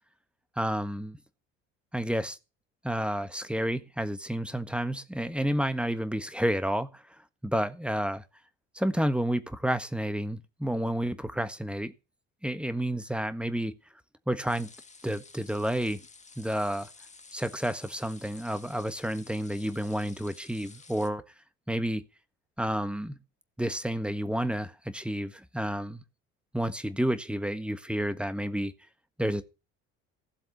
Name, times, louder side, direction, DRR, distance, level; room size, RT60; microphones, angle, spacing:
voice 1, 0.6-1.2 1.9-2.4 2.8-8.2 8.7-11.9 12.4-13.7 14.3-14.7 15.0-16.0 16.4-16.9 17.3-21.2 21.7-22.0 22.6-23.2 23.6-26.0 26.5-28.7 29.2-29.4, equal, 5° right, 1.5 m, -30 dB
sound 1, 14.5-21.1, left 4 dB, 20° left, 1.8 m, -52 dB
16.0 x 7.6 x 5.5 m
hypercardioid pair, 55°, 38 cm